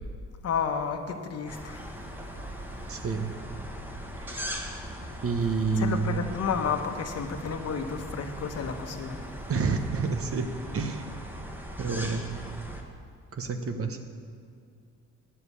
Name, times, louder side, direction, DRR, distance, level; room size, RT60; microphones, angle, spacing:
voice 1, 0.4-1.9 5.8-9.2, left 6 dB, 55° left, 6 dB, 1.1 m, -31 dB
sound 1, 1.5-12.8, equal, 5° right, 1.4 m, -39 dB
voice 2, 2.9-3.3 4.2-4.5 5.2-6.2 9.5-10.5 10.7-11.0 11.8-12.3 13.3-14.0, right 5 dB, 50° right, 8 dB, 1.1 m, -29 dB
10.0 x 7.2 x 8.4 m, 2.4 s
cardioid pair, 90°, 30 cm